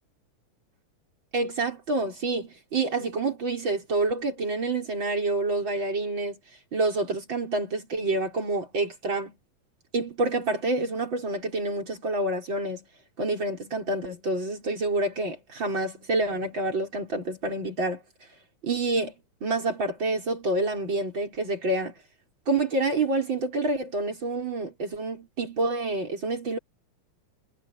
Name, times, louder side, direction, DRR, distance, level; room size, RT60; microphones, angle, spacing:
voice 1, 1.3-6.4 6.7-9.4 9.9-12.8 13.2-18.0 18.6-19.1 19.4-21.9 22.5-26.6, right 2 dB, 40° right, 6.4 m, -28 dB
omnidirectional pair, 3.4 m